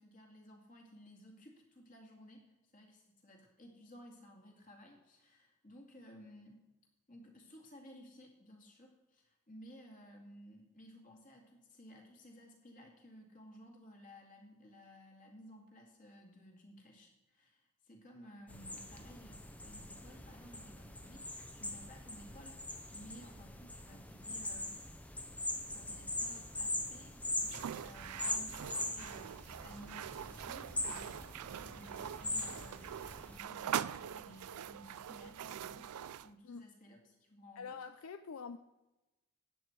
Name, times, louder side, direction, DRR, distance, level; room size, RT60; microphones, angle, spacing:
voice 1, 0.0-2.5 2.7-6.6 7.1-21.3 21.5-24.8 25.7-31.3 31.6-32.9 33.2-35.9 36.2-37.8, equal, 35° left, 2.2 m, -56 dB
sound 1, 18.5-33.4, left 2 dB, 5° left, 0.7 m, -42 dB
sound 2, 27.4-36.3, right 9 dB, 85° right, 0.4 m, -43 dB
voice 2, 37.6-38.6, left 5 dB, 70° left, 0.4 m, -45 dB
13.5 x 8.9 x 4.6 m
head